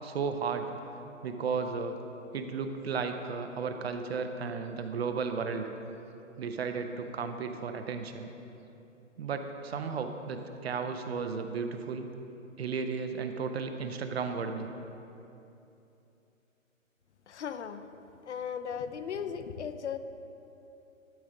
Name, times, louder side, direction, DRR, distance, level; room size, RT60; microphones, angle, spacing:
voice 1, 0.0-0.7 1.2-2.0 2.3-5.7 6.4-8.3 9.2-12.1 12.6-14.7, right 5 dB, 50° right, 7 dB, 0.6 m, -34 dB
voice 2, 17.3-17.8 18.2-20.0, left 7 dB, 60° left, 10 dB, 0.6 m, -36 dB
12.0 x 5.1 x 3.7 m, 2.9 s
figure-of-eight pair, 130°, 40 cm